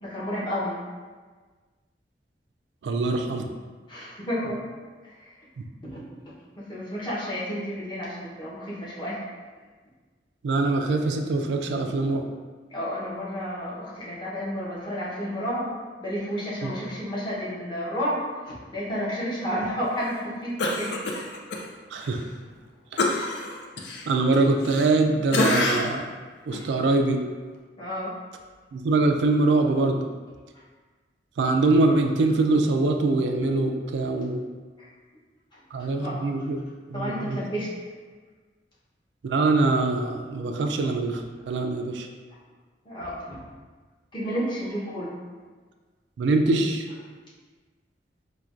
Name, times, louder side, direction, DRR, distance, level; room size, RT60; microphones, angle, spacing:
voice 1, 0.0-0.7 3.9-4.7 5.0-5.3 5.9-6.0 6.6-9.2 12.7-15.7 16.0-20.9 23.0-23.1 27.8-28.1 34.8-34.9 35.8-36.1 36.9-37.7 42.8-43.4 44.1-45.1, equal, 25° left, -8 dB, 0.9 m, -31 dB
voice 2, 2.8-3.5 10.4-12.3 16.6-16.7 21.9-22.2 24.1-26.1 26.5-27.2 28.7-30.0 31.4-34.5 35.7-36.6 36.9-37.4 39.2-42.1 46.2-46.9, right 3 dB, 80° right, 4 dB, 0.3 m, -23 dB
Cough, 20.6-21.6 22.0-22.2 23.0-25.0 25.3-26.0 26.5-26.7, left 2 dB, 75° left, 0.4 m, -26 dB
4.4 x 2.2 x 2.5 m, 1.4 s
head